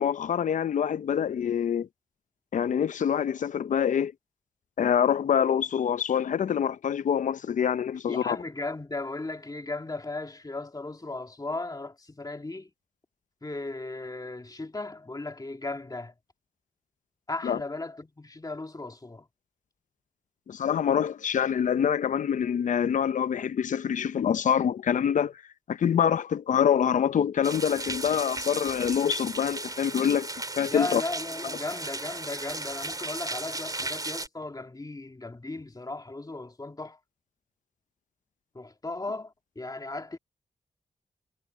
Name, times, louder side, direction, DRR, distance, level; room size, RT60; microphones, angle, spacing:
voice 1, 0.0-1.9 2.5-4.1 4.8-8.4 17.4-17.6 20.5-25.3 25.7-30.3 30.6-31.0, left 8 dB, 75° left, 0.7 m, -25 dB
voice 2, 8.1-12.7 13.4-16.1 17.3-19.3 30.7-37.0 38.5-40.2, left 2 dB, 30° left, 2.3 m, -36 dB
sound 1, 27.4-34.3, right 2 dB, 30° right, 3.6 m, -35 dB
cardioid pair, 45°, 13 cm